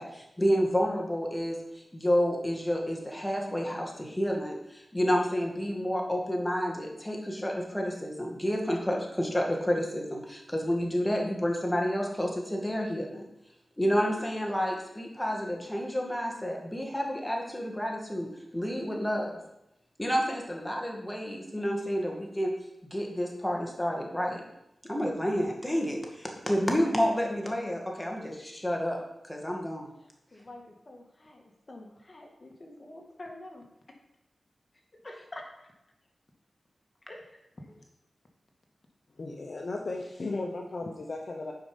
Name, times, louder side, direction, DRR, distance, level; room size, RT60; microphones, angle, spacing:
voice 1, 0.0-13.3 13.8-19.4 20.0-22.5 22.8-24.4 24.9-29.9, equal, 10° left, 2.2 m, -30 dB
voice 2, 30.3-31.4 31.7-33.6 35.0-35.4 37.1-37.4, left 1 dB, 40° left, 2.0 m, -46 dB
voice 3, 39.2-41.5, left 2 dB, 60° left, 0.9 m, -35 dB
9.5 x 5.5 x 5.3 m
cardioid pair, 50°, 0 cm